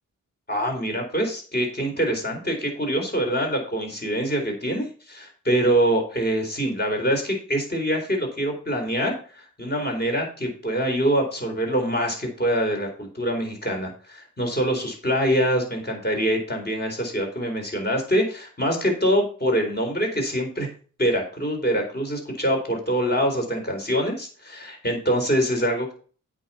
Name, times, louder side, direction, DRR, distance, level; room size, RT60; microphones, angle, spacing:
voice 1, 0.5-20.7 21.0-25.9, equal, 30° left, 1 dB, 4.1 m, -24 dB
8.4 x 5.5 x 5.7 m, 0.41 s
cardioid pair, 70°, 32 cm